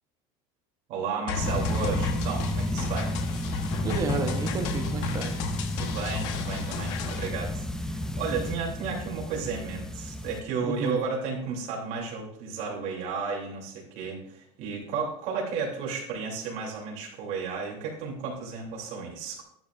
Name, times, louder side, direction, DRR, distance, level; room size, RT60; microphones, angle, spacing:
voice 1, 0.9-3.1 5.8-19.4, right 5 dB, 50° right, -1 dB, 2.8 m, -33 dB
sound 1, 1.3-7.3, left 5 dB, 70° left, 1.1 m, -34 dB
sound 2, 1.4-10.4, left 1 dB, 5° left, 0.4 m, -31 dB
voice 2, 3.8-5.4 10.6-11.1, right 4 dB, 25° right, 5 dB, 0.9 m, -32 dB
11.5 x 9.4 x 2.5 m, 0.72 s
cardioid pair, 170°, 16 cm